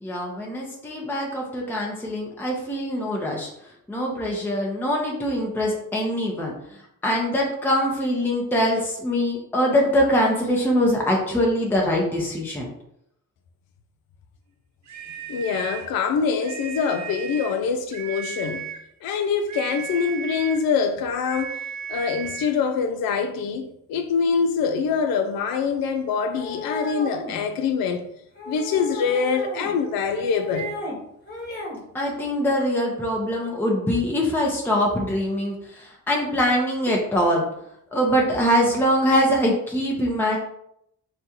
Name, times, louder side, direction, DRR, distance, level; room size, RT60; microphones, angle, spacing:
voice 1, 0.0-3.5 3.9-6.5 7.0-12.7 31.9-37.4 37.9-40.4, equal, 5° left, 0.8 m, -23 dB
sound 1, 14.9-16.0 16.4-17.6 17.9-18.9 19.5-20.7 21.2-22.6, right 8 dB, 40° right, 0.6 m, -35 dB
voice 2, 15.3-18.7 19.0-21.6 21.9-28.1 28.5-30.7, left 6 dB, 55° left, 0.5 m, -24 dB
sound 2, 26.3-27.4 28.4-29.7 30.1-31.0 31.3-31.8, left 1 dB, 20° left, 1.4 m, -34 dB
3.3 x 2.3 x 2.9 m
hypercardioid pair, 40°, 44 cm